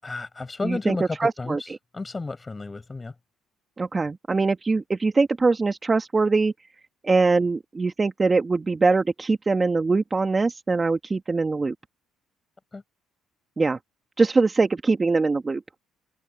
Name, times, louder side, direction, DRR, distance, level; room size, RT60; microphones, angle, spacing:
voice 1, 0.0-3.1 12.7-12.8, left 3 dB, 25° left, 7.8 m, -32 dB
voice 2, 0.6-1.6 3.8-6.5 7.0-11.7 13.6-13.8 14.2-15.6, right 3 dB, 25° right, 1.9 m, -22 dB
open air
supercardioid pair, 75°, 0 cm